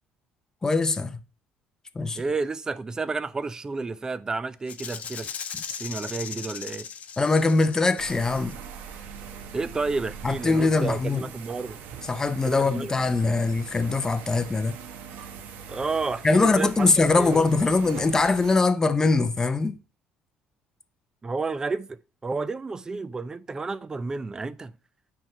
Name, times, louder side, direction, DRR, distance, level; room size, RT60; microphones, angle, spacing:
voice 1, 0.6-1.2 1.9-2.2 7.2-8.6 10.2-11.2 12.1-14.8 16.2-19.8, left 3 dB, 20° left, 0.7 m, -22 dB
voice 2, 2.1-5.3 5.7-6.9 9.5-11.8 12.4-12.9 15.7-16.9 17.2-17.4 21.2-24.7, right 4 dB, 20° right, 0.6 m, -31 dB
Rattle (instrument), 4.7-8.5, left 7 dB, 50° left, 1.0 m, -38 dB
sound 1, 8.0-18.6, right 6 dB, 75° right, 1.1 m, -42 dB
9.1 x 3.7 x 5.6 m
cardioid pair, 115°, 3 cm